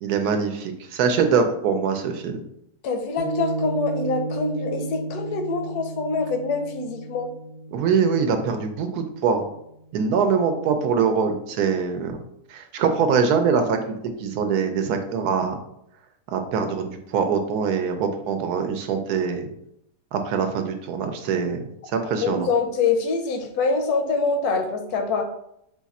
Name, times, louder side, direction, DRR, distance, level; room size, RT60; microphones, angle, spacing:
voice 1, 0.0-2.4 7.7-9.5 9.9-12.2 12.5-15.6 16.3-19.5 20.1-21.6 21.9-22.5, right 6 dB, 75° right, 6 dB, 1.0 m, -23 dB
voice 2, 2.8-7.3 22.2-25.2, left 4 dB, 75° left, 5 dB, 1.1 m, -25 dB
Piano, 3.2-9.8, right 2 dB, 35° left, 0.4 m, -33 dB
4.0 x 2.4 x 4.1 m, 0.76 s
omnidirectional pair, 1.7 m